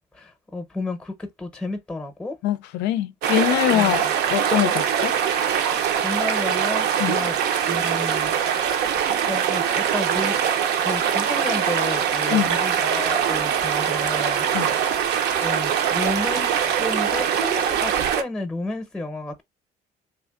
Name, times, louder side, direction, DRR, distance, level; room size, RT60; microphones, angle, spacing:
voice 1, 0.1-2.4 3.7-4.1 6.0-7.4 7.7-8.3 9.3-10.4 10.8-14.8 15.4-19.4, left 2 dB, 5° left, 0.6 m, -32 dB
voice 2, 2.4-5.1 7.0-7.2 12.3-12.5 14.5-14.7, left 13 dB, 85° left, 0.4 m, -23 dB
sound 1, 3.2-18.2, right 8 dB, 75° right, 0.6 m, -22 dB
3.3 x 2.5 x 2.3 m
cardioid pair, 110°, 17 cm